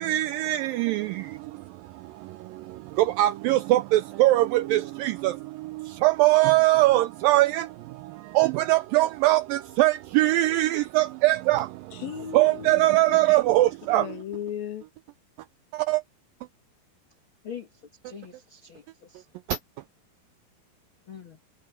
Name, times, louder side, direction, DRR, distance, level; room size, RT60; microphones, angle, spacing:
voice 1, 0.1-0.6 3.2-3.8 4.2-4.4 6.0-7.5 8.4-9.4 9.8-9.9 10.2-10.7 11.2-11.6 12.4-13.7 13.9-14.0, right 17 dB, 85° right, 2.0 m, -20 dB
voice 2, 11.9-13.3 13.9-14.8, left 10 dB, 70° left, 3.5 m, -36 dB
voice 3, 17.4-19.3 21.1-21.4, left 7 dB, 40° left, 2.1 m, -43 dB
omnidirectional pair, 4.6 m